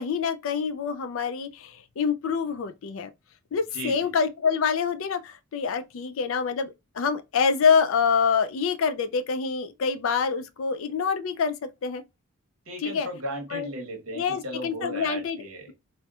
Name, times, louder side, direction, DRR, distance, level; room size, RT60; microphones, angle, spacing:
voice 1, 0.0-3.1 3.5-12.0 12.8-13.1 13.5-13.7 14.2-15.4, left 6 dB, 65° left, 0.4 m, -26 dB
voice 2, 3.7-4.1 12.7-15.7, right 1 dB, 75° right, 1.1 m, -36 dB
4.3 x 2.1 x 2.3 m
head